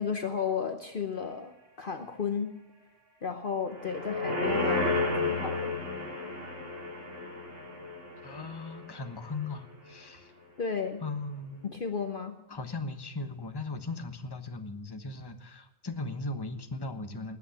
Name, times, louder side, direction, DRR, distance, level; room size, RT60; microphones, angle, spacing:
voice 1, 0.0-2.6 3.2-5.7 10.6-11.0 11.6-12.4, left 6 dB, 45° left, 7 dB, 1.0 m, -33 dB
sound 1, 3.7-9.0 9.4-9.5, left 2 dB, 70° right, 3.6 m, -32 dB
voice 2, 8.2-10.3 11.0-11.7 12.5-17.4, left 3 dB, 20° left, 7 dB, 1.1 m, -38 dB
19.5 x 8.4 x 7.2 m, 1.1 s
omnidirectional pair, 1.3 m